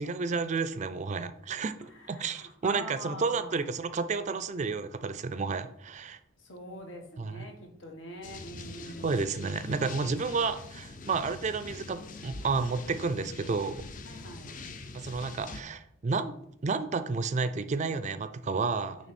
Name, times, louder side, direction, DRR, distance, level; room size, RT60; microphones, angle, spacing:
voice 1, 0.0-1.7 2.1-6.2 7.2-7.5 9.0-13.8 14.9-16.3 16.6-19.0, right 4 dB, 35° right, 12 dB, 0.4 m, -31 dB
voice 2, 1.8-3.7 6.4-9.3 14.0-14.6 19.0-19.1, equal, 80° left, 2 dB, 1.5 m, -45 dB
sound 1, 8.2-15.6, left 3 dB, 45° left, 0.6 m, -44 dB
9.2 x 3.4 x 4.2 m, 0.72 s
head